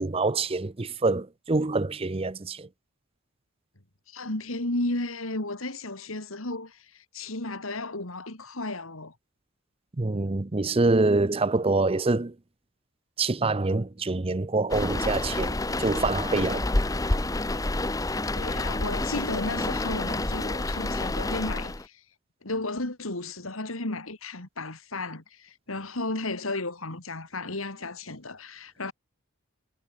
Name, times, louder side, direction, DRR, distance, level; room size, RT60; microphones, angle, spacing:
voice 1, 0.0-2.7 10.0-12.3 13.2-16.7, right 3 dB, 25° right, 0.6 m, -26 dB
voice 2, 4.1-9.1 18.3-22.0 22.4-28.9, left 2 dB, 75° left, 3.2 m, -34 dB
sound 1, 14.7-21.9, left 2 dB, 15° left, 0.8 m, -28 dB
head